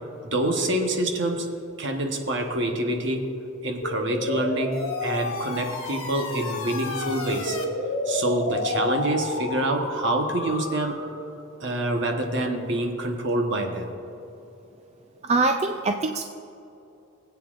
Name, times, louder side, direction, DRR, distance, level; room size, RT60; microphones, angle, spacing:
voice 1, 0.2-1.5 1.8-3.3 3.6-7.6 8.0-11.0 11.6-13.9, right 1 dB, 60° right, 3 dB, 1.1 m, -26 dB
sound 1, 3.8-11.3, left 2 dB, 70° left, 1.3 m, -31 dB
voice 2, 15.2-16.2, right 3 dB, 30° right, 5 dB, 0.3 m, -23 dB
20.0 x 8.3 x 2.5 m, 2.9 s
head